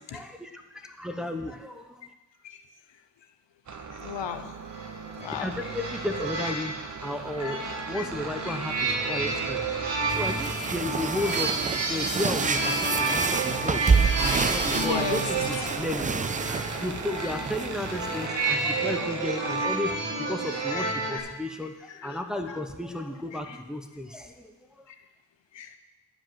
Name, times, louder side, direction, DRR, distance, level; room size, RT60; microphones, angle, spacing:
voice 1, 0.1-2.1 5.4-6.7 7.0-9.7 10.1-13.8 14.2-16.3 16.6-24.9, left 1 dB, ahead, 4 dB, 0.7 m, -34 dB
voice 2, 3.7-4.6 5.2-5.7 7.4-8.1 8.5-8.6 9.7-9.9 10.7-10.8 11.8-12.0 14.7-15.2 18.3-18.4 20.5-21.3 21.9-22.2 22.5-22.6 23.3-23.6 24.9-25.0 25.5-25.8, left 7 dB, 80° left, 8 dB, 0.9 m, -37 dB
sound 1, 3.7-19.7, right 6 dB, 40° right, 0.8 m, -39 dB
sound 2, 4.6-21.2, right 3 dB, 80° right, 2.1 m, -31 dB
sound 3, 10.1-18.3, right 5 dB, 20° right, 0.3 m, -28 dB
10.0 x 5.1 x 7.4 m, 1.1 s
wide cardioid pair, 110°, 43 cm